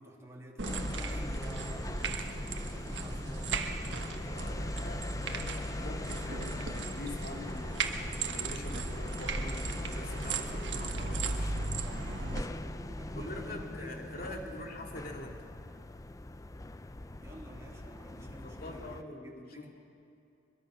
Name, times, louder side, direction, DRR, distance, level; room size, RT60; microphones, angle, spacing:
voice 1, 0.0-3.9 11.4-14.9 17.2-19.7, right 1 dB, 15° right, -2 dB, 2.3 m, -50 dB
sound 1, 0.6-19.0, left 2 dB, 20° left, 0.5 m, -41 dB
sound 2, 0.6-12.4, right 3 dB, 65° right, 1.4 m, -37 dB
voice 2, 4.3-7.8 8.3-11.5 13.1-15.5 18.1-19.7, left 2 dB, 50° left, 2 dB, 2.5 m, -45 dB
23.5 x 22.0 x 6.2 m, 2.7 s
head